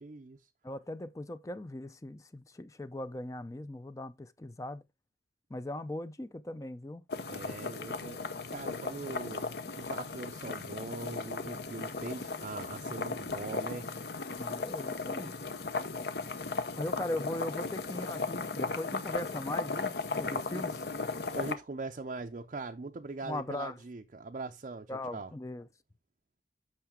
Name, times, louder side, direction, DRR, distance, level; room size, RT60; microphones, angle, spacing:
voice 1, 0.0-0.5 7.3-9.5 9.8-13.9 20.5-20.6 21.3-25.3, right 3 dB, 40° right, 0.5 m, -41 dB
voice 2, 0.6-4.8 5.5-7.0 14.4-15.3 16.8-20.7 23.2-23.8 24.9-25.7, left 1 dB, 15° left, 0.4 m, -39 dB
sound 1, 7.1-21.5, left 4 dB, 60° left, 0.8 m, -36 dB
8.7 x 5.7 x 3.6 m
head